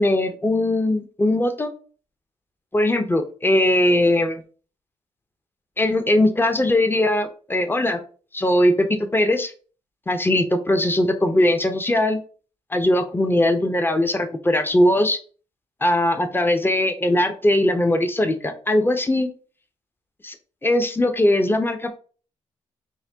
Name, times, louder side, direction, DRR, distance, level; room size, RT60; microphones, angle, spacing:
voice 1, 0.0-1.7 2.7-4.4 5.8-8.0 8.3-9.5 10.1-12.2 12.7-15.2 15.8-19.3 20.2-20.3 20.6-22.0, left 1 dB, 15° left, 7 dB, 0.7 m, -20 dB
5.6 x 2.2 x 2.8 m, 0.40 s
hypercardioid pair, 45°, 15 cm